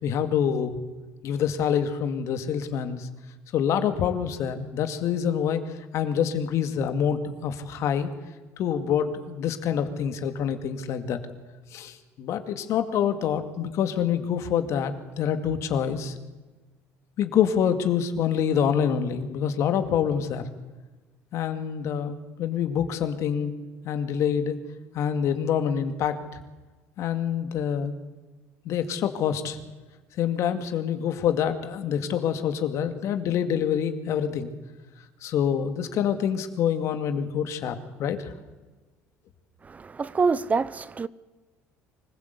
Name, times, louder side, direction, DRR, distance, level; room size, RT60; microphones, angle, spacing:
voice 1, 0.0-0.8 1.2-3.1 3.5-8.1 8.6-11.2 11.7-16.1 17.2-20.4 21.3-23.5 23.8-24.6 24.9-26.2 27.0-28.0 28.7-29.6 30.2-34.5 35.2-38.3, left 8 dB, 60° left, 2.2 m, -26 dB
voice 2, 39.6-41.1, right 4 dB, 25° right, 0.6 m, -26 dB
24.5 x 15.5 x 8.3 m
supercardioid pair, 100°, 6 cm